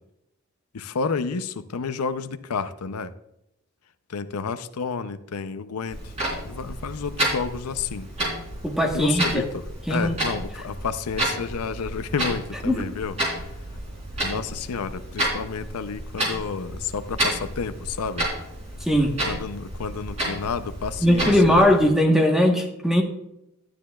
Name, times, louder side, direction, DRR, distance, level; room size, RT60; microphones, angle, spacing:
voice 1, 0.7-3.1 4.1-8.1 8.9-13.1 14.2-18.3 19.3-21.7, left 5 dB, 90° left, 11 dB, 0.6 m, -30 dB
Clock, 5.9-21.9, right 1 dB, 30° right, 3.5 m, -31 dB
voice 2, 8.6-9.4 9.9-10.2 12.6-12.9 18.8-19.1 21.0-23.0, equal, ahead, 2 dB, 1.1 m, -19 dB
12.0 x 9.8 x 2.3 m, 0.85 s
head